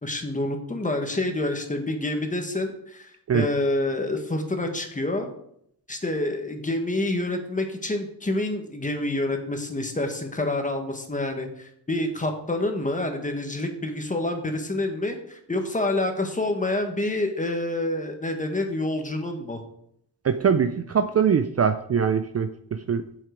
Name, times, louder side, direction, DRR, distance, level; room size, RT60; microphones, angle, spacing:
voice 1, 0.0-5.3 5.9-19.6, left 2 dB, 20° left, 4 dB, 1.5 m, -27 dB
voice 2, 20.2-23.0, right 7 dB, 40° right, 9 dB, 0.5 m, -22 dB
8.0 x 7.5 x 5.1 m, 0.72 s
wide cardioid pair, 130°, 40 cm